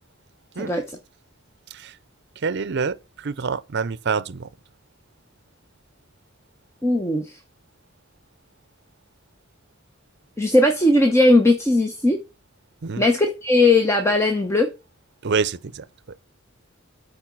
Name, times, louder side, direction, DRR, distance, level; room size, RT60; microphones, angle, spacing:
voice 1, 2.4-4.5 12.8-13.1 15.2-15.9, right 5 dB, 60° right, 0.6 m, -26 dB
voice 2, 6.8-7.4 10.4-12.2 13.0-14.7, left 2 dB, 15° left, 0.9 m, -18 dB
8.8 x 4.9 x 6.1 m
head